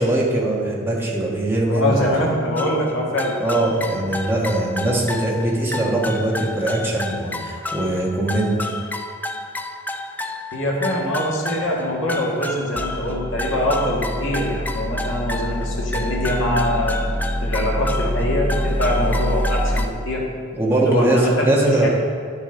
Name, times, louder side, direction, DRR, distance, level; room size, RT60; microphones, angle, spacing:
voice 1, 0.0-2.0 3.4-8.7 20.5-21.9, right 1 dB, 10° right, -4 dB, 1.4 m, -21 dB
voice 2, 1.7-3.3 10.5-17.1 17.4-20.3 20.8-21.9, left 1 dB, 60° left, -3 dB, 1.7 m, -23 dB
sound 1, 2.6-19.9, left 1 dB, 10° left, 0.3 m, -27 dB
11.0 x 6.6 x 3.9 m, 2.3 s
head